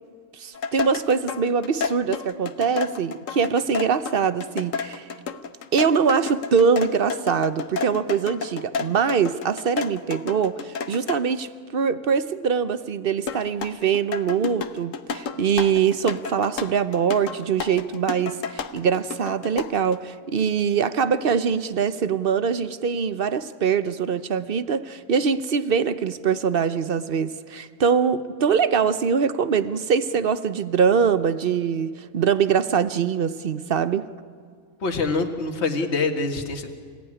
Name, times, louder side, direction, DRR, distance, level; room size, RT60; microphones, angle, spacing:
voice 1, 0.4-5.1 5.7-34.1, right 6 dB, 50° right, 0.8 m, -23 dB
sound 1, 0.5-11.2 13.3-20.0, left 5 dB, 60° left, 1.3 m, -31 dB
voice 2, 34.8-36.7, left 3 dB, 45° left, 2.0 m, -25 dB
27.0 x 17.0 x 9.8 m
omnidirectional pair, 1.6 m